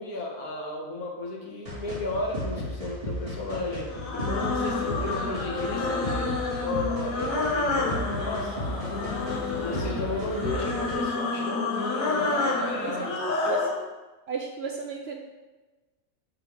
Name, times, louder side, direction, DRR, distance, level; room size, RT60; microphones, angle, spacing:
voice 1, 0.0-8.8 9.4-13.6, left 2 dB, 90° left, 0 dB, 1.6 m, -34 dB
sound 1, 1.7-10.9, left 1 dB, 40° right, 2.0 m, -35 dB
sound 2, 3.9-13.8, left 3 dB, 65° left, 1.3 m, -29 dB
voice 2, 12.6-13.0 13.5-13.6 14.3-15.2, right 5 dB, 65° right, 2 dB, 0.6 m, -34 dB
8.2 x 3.7 x 3.5 m, 1.2 s
omnidirectional pair, 1.5 m